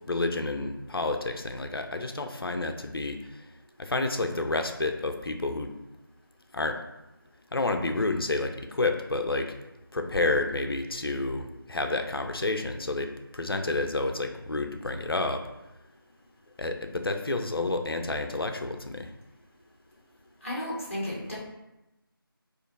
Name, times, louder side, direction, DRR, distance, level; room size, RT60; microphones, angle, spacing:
voice 1, 0.1-3.5 3.8-5.7 6.5-6.8 7.5-9.5 9.9-15.4 16.6-19.1, left 2 dB, 70° left, 6 dB, 0.5 m, -30 dB
voice 2, 20.4-21.4, left 1 dB, 35° left, -5 dB, 1.1 m, -33 dB
4.3 x 2.5 x 2.5 m, 0.96 s
figure-of-eight pair, 175°, 12 cm